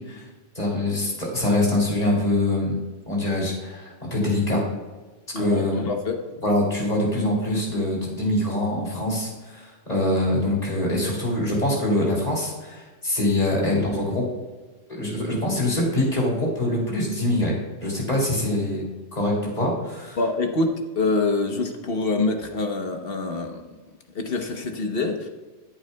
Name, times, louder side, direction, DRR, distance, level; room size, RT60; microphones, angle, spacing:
voice 1, 0.5-2.8 3.1-4.6 5.3-5.8 6.4-14.2 14.9-18.9 19.1-20.2, left 1 dB, 35° left, -3 dB, 3.0 m, -24 dB
voice 2, 5.3-6.2 20.2-23.6 24.1-25.3, left 3 dB, 55° left, 4 dB, 1.1 m, -25 dB
14.0 x 7.9 x 2.2 m, 1.3 s
omnidirectional pair, 1.2 m